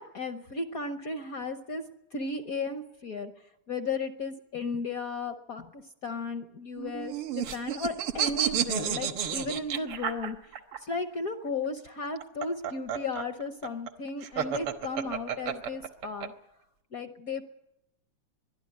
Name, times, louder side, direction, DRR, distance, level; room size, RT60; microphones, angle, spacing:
voice 1, 0.0-3.3 3.7-16.3 16.9-17.5, left 3 dB, 60° left, 8 dB, 1.0 m, -35 dB
sound 1, 6.8-10.8 12.0-16.3, right 9 dB, 80° right, 2.1 m, -31 dB
22.5 x 12.5 x 9.4 m, 0.85 s
omnidirectional pair, 2.4 m